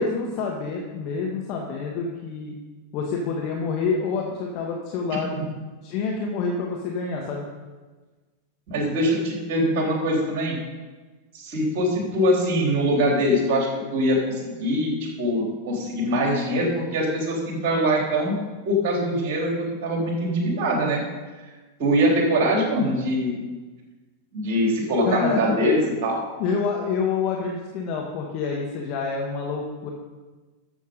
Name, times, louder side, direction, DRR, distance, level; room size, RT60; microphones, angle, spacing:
voice 1, 0.0-2.5 2.9-5.4 5.8-7.5 25.0-25.4 26.4-29.9, left 5 dB, 40° left, 0 dB, 1.5 m, -27 dB
voice 2, 5.1-5.4 8.7-10.6 11.3-18.4 18.7-21.0 21.8-23.4 24.3-26.2, equal, 45° right, -1 dB, 3.8 m, -23 dB
12.5 x 7.3 x 5.4 m, 1.3 s
figure-of-eight pair, 90°, 0 cm